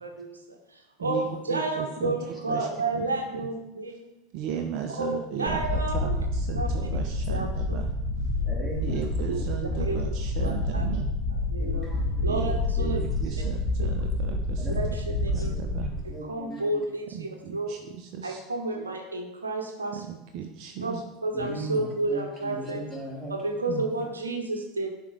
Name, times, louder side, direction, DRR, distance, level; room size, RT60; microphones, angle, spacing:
voice 1, 0.0-4.2 5.0-6.2 6.5-6.7 7.3-7.8 8.4-8.5 9.3-9.4 9.8-10.0 10.4-10.8 11.5-11.9 12.2-13.0 13.8-13.9 14.7-15.5 16.2-17.7 18.2-20.0 20.8-22.9 23.3-24.9, right 2 dB, 85° right, 4 dB, 0.9 m, -31 dB
voice 2, 1.0-2.2 2.5-2.7 2.9-3.5 4.3-5.6 5.9-7.9 8.8-11.1 12.2-14.8 15.3-15.9 17.1-18.4 19.9-21.0 23.7-23.9, right 8 dB, 55° right, 4 dB, 0.7 m, -36 dB
sound 1, 5.5-16.0, left 2 dB, 35° left, 2.9 m, -28 dB
voice 3, 8.5-9.0 10.5-10.6 11.6-12.3 13.4-13.5 14.6-14.8 15.3-15.6 16.1-16.8 21.3-21.8 22.1-23.3, right 1 dB, 5° right, -4 dB, 3.0 m, -38 dB
11.0 x 4.5 x 4.8 m, 0.95 s
figure-of-eight pair, 80°, 0 cm